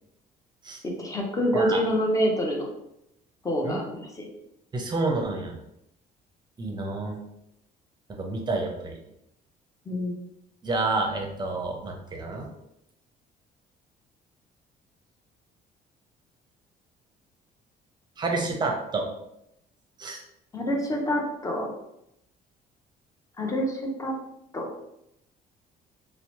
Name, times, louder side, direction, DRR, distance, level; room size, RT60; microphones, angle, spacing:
voice 1, 0.8-2.7 3.4-4.2 9.9-10.1 20.5-21.7 23.4-24.1 24.5-24.7, equal, 20° left, 0 dB, 0.6 m, -27 dB
voice 2, 4.7-5.5 6.6-7.2 8.1-9.0 10.6-12.5 18.2-19.1 20.0-20.2, right 3 dB, 25° right, 1 dB, 0.6 m, -29 dB
2.8 x 2.0 x 2.8 m, 0.81 s
cardioid pair, 110°, 17 cm